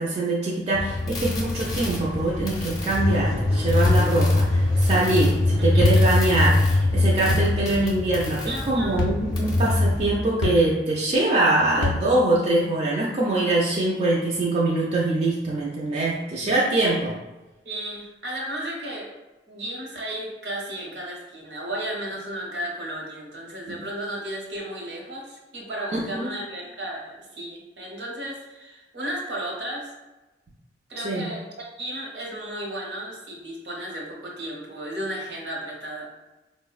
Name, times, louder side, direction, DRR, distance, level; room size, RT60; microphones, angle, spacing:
voice 1, 0.0-17.1 23.7-23.8 26.1-26.3 31.0-31.2, right 2 dB, 35° right, -5 dB, 0.4 m, -23 dB
sound 1, 0.7-10.2, left 2 dB, 20° left, 0.6 m, -23 dB
sound 2, 3.9-4.1 5.8-6.1 7.3-7.5 9.0-9.2 10.4-10.6 11.8-12.1, left 3 dB, 80° left, 0.4 m, -24 dB
voice 2, 5.6-6.3 8.5-9.1 17.6-19.1 19.5-29.9 30.9-36.1, right 1 dB, 65° right, -2 dB, 0.8 m, -34 dB
4.1 x 2.0 x 2.3 m, 1.1 s
head